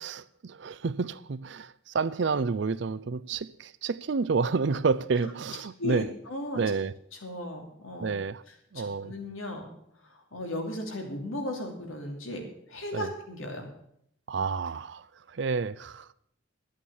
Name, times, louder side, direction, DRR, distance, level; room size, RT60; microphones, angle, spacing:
voice 1, 0.0-6.1 6.5-6.9 8.0-8.4 8.7-9.1 12.9-13.1 14.3-15.0 15.3-16.1, right 4 dB, 60° right, 0.5 m, -29 dB
voice 2, 5.8-6.6 7.2-8.1 8.7-9.7 10.1-12.4 12.7-13.7, left 1 dB, 85° left, 2.8 m, -36 dB
11.5 x 8.5 x 7.1 m
head